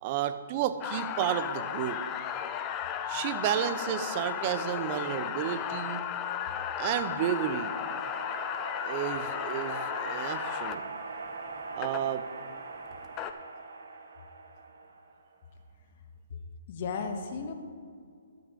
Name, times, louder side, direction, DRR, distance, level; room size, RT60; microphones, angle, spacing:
voice 1, 0.0-2.1 2.9-6.0 6.8-7.8 8.8-10.9 11.7-12.3, right 10 dB, 35° right, 11 dB, 0.7 m, -32 dB
sound 1, 0.8-10.8 11.8-12.0 12.9-13.3, left 9 dB, 25° left, 0.6 m, -34 dB
sound 2, 5.8-15.4, right 3 dB, 70° right, 1.4 m, -42 dB
voice 2, 16.7-17.5, left 5 dB, 45° left, 5 dB, 1.5 m, -34 dB
13.0 x 6.8 x 5.1 m, 2.1 s
hypercardioid pair, 135°, 0 cm